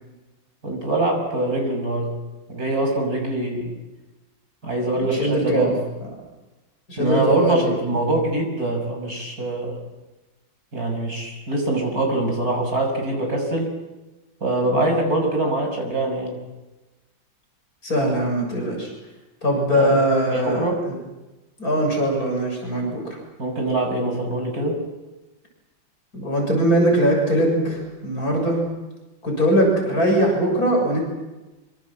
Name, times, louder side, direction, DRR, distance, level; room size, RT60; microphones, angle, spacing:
voice 1, 0.6-2.2 2.5-3.8 4.6-5.8 7.0-9.8 10.7-13.7 14.4-16.4 19.5-20.0 20.3-20.8 23.4-24.8, right 2 dB, 45° right, 2 dB, 6.9 m, -24 dB
voice 2, 5.0-5.7 6.9-7.7 14.7-14.8 17.8-18.9 19.4-21.0 21.6-23.2 26.1-28.6 29.2-31.0, right 1 dB, 45° left, 0 dB, 7.6 m, -21 dB
25.5 x 25.5 x 7.7 m, 1.1 s
omnidirectional pair, 2.2 m